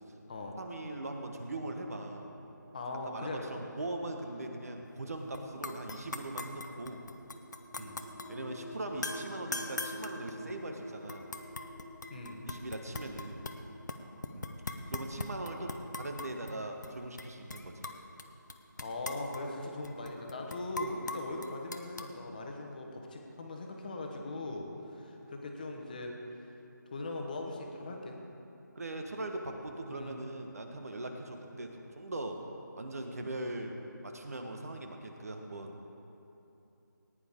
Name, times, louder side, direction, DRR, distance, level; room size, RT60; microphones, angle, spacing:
voice 1, 0.6-2.3 3.0-7.0 7.8-8.0 8.3-11.3 12.5-13.5 14.3-14.5 14.9-17.9 28.7-32.4 32.8-33.8 34.0-35.8, right 2 dB, 50° right, 4 dB, 1.3 m, -40 dB
voice 2, 2.7-3.4 7.8-8.0 12.1-12.4 18.8-26.1 26.9-28.2 29.9-30.2, left 2 dB, 25° left, 1 dB, 1.2 m, -40 dB
sound 1, 5.3-5.4 5.6-8.3 9.0-10.7 11.1-13.6 13.9-16.5 16.8-16.9 17.2-18.2 18.5-22.1, left 3 dB, 60° left, 0.9 m, -41 dB
sound 2, 7.1-18.3, equal, 20° right, 1.4 m, -50 dB
19.0 x 10.0 x 3.6 m, 2.9 s
figure-of-eight pair, 165°, 11 cm